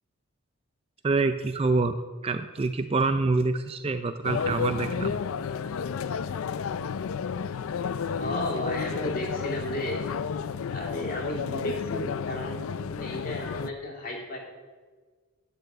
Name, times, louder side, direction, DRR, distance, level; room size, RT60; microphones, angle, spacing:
voice 1, 1.0-5.2, right 3 dB, 25° right, 9 dB, 0.3 m, -26 dB
sound 1, 4.2-13.7, left 6 dB, 70° left, 0.4 m, -32 dB
voice 2, 8.1-10.0 10.7-14.4, left 1 dB, 40° left, -1 dB, 2.5 m, -33 dB
10.0 x 6.7 x 8.0 m, 1.5 s
head